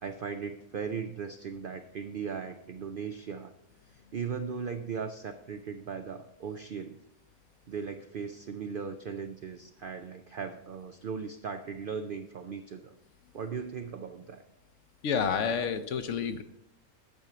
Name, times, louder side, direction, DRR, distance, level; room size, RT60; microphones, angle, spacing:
voice 1, 0.0-3.5 3.9-7.0 7.7-12.9 13.3-14.4, right 6 dB, 65° right, 8 dB, 0.5 m, -38 dB
voice 2, 15.0-16.4, left 6 dB, 60° left, 10 dB, 0.9 m, -29 dB
9.0 x 6.0 x 6.7 m, 0.83 s
omnidirectional pair, 1.5 m